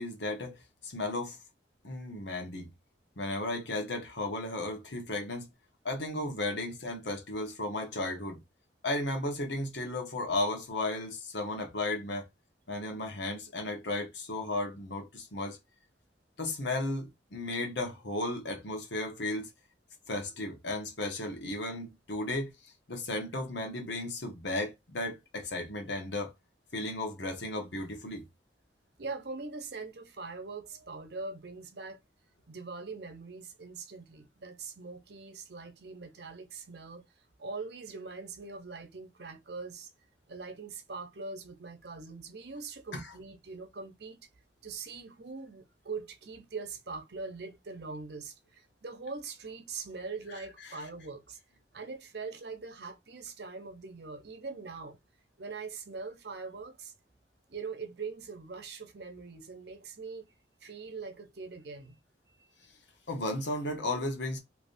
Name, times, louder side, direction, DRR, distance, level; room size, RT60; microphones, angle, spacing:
voice 1, 0.0-1.4 1.8-2.7 3.2-5.5 5.8-8.4 8.8-12.3 12.7-15.6 16.4-19.5 20.1-22.5 22.9-26.3 26.7-28.2 42.9-43.0 63.1-64.4, left 2 dB, 75° left, 1.3 m, -34 dB
voice 2, 29.0-32.0 32.5-37.0 37.4-39.9 40.3-44.3 44.6-51.4 51.7-55.0 55.4-56.9 57.5-60.3 60.6-62.0 62.4-62.5, right 4 dB, 60° right, 0.8 m, -42 dB
3.4 x 2.9 x 2.6 m
head